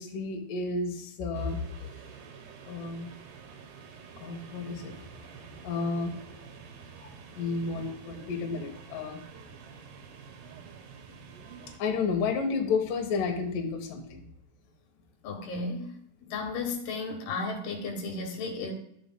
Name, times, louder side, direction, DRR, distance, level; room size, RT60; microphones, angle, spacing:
voice 1, 0.0-1.6 2.7-3.1 4.2-5.1 5.6-6.1 7.0-9.2 11.8-14.2, left 4 dB, 65° left, 2 dB, 2.5 m, -31 dB
sound 1, 1.3-11.8, right 6 dB, 90° right, 3.2 m, -48 dB
voice 2, 15.2-15.9 16.3-18.7, left 3 dB, 80° left, 2 dB, 3.3 m, -34 dB
12.5 x 7.8 x 2.2 m, 0.71 s
omnidirectional pair, 4.5 m